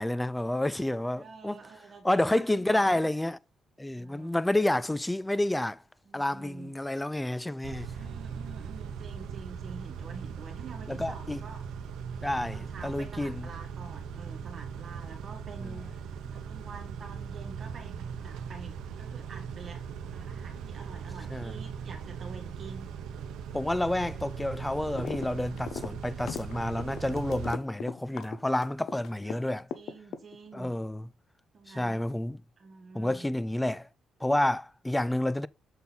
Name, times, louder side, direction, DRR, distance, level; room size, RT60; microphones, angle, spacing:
voice 1, 0.0-1.6 2.0-3.4 3.8-5.8 6.1-7.9 10.9-11.4 12.2-13.5 21.3-21.5 23.5-29.7 30.5-31.1 31.8-32.4 32.9-33.9 34.2-35.5, left 1 dB, 10° left, 0.3 m, -29 dB
voice 2, 1.1-3.0 3.9-4.4 6.0-6.7 7.9-11.6 12.2-15.9 16.3-19.8 20.1-22.9 29.2-30.7 31.5-32.1 32.6-33.3, right 4 dB, 50° right, 1.5 m, -47 dB
Car / Idling / Accelerating revving vroom, 7.6-27.5, right 6 dB, 85° right, 0.7 m, -39 dB
sound 1, 25.0-25.3 25.5-29.4 29.7-30.6, left 7 dB, 70° left, 0.6 m, -37 dB
7.1 x 3.9 x 3.9 m
cardioid pair, 90°, 0 cm